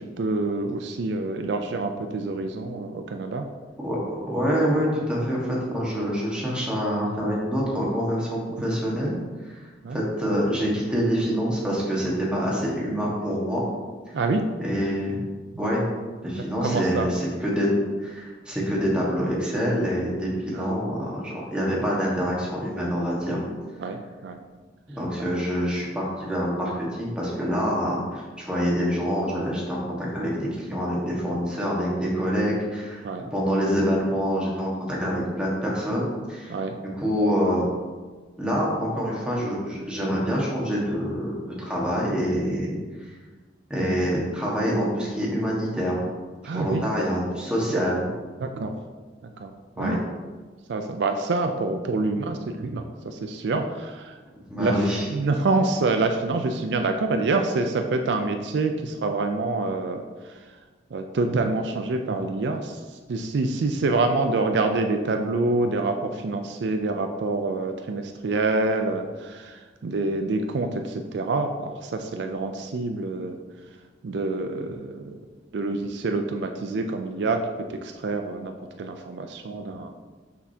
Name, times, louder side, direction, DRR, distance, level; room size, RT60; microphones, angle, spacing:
voice 1, 0.2-3.5 9.8-10.0 14.1-14.5 16.3-17.1 20.5-20.7 23.8-24.4 33.0-33.2 36.5-36.8 46.4-46.9 48.4-48.8 49.4-50.0 50.7-54.2 54.6-60.4 60.9-62.8 63.1-73.4 74.0-75.2 75.5-80.0, right 3 dB, 70° right, 5 dB, 0.4 m, -27 dB
voice 2, 3.8-9.2 9.4-9.6 9.9-13.6 14.6-15.3 15.6-15.8 16.2-17.7 18.0-23.4 24.9-30.3 30.7-36.5 37.0-37.7 38.4-42.8 43.7-46.0 46.5-48.1 49.8-50.0 54.5-55.1, equal, 5° right, -5 dB, 1.4 m, -26 dB
6.1 x 5.9 x 2.8 m, 1.4 s
head